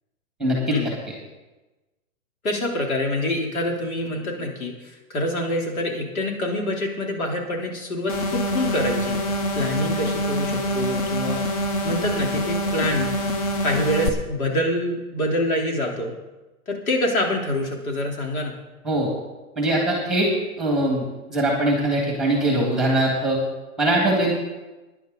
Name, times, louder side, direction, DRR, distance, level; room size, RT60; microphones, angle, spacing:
voice 1, 0.4-0.8 18.8-19.1 19.6-20.3 20.6-23.4 23.8-24.3, right 1 dB, ahead, -1 dB, 1.8 m, -22 dB
voice 2, 2.4-11.4 11.8-13.1 13.6-16.1 16.7-18.5, left 1 dB, 75° left, 0 dB, 3.5 m, -26 dB
sound 1, 8.1-14.1, equal, 25° left, 0.8 m, -25 dB
16.5 x 10.5 x 4.0 m, 1.1 s
hypercardioid pair, 165°, 42 cm